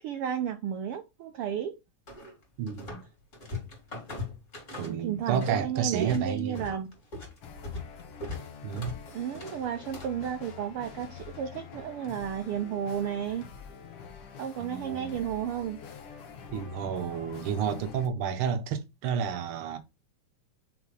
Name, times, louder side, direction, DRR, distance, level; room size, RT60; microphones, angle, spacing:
voice 1, 0.0-1.8 4.8-6.9 9.1-13.4 14.4-15.8, right 9 dB, 85° right, 1.2 m, -33 dB
sound 1, 2.1-3.1 3.3-5.6 5.8-10.2, left 3 dB, 25° left, 2.8 m, -40 dB
voice 2, 2.6-3.0 4.8-6.6 8.6-9.0 14.6-15.1 16.5-19.8, right 7 dB, 65° right, 1.5 m, -31 dB
sound 2, 7.4-18.1, left 6 dB, 65° left, 1.7 m, -46 dB
5.6 x 4.1 x 4.8 m
omnidirectional pair, 3.4 m